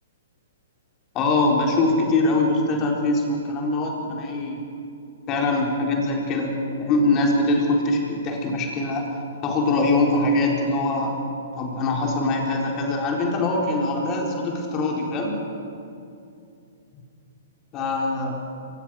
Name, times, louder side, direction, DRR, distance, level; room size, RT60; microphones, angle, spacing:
voice 1, 1.1-4.6 5.3-9.1 9.4-11.2 11.6-15.4 17.7-18.4, left 2 dB, 30° left, 0 dB, 4.1 m, -23 dB
23.5 x 19.5 x 6.5 m, 2.6 s
hypercardioid pair, 130°, 0 cm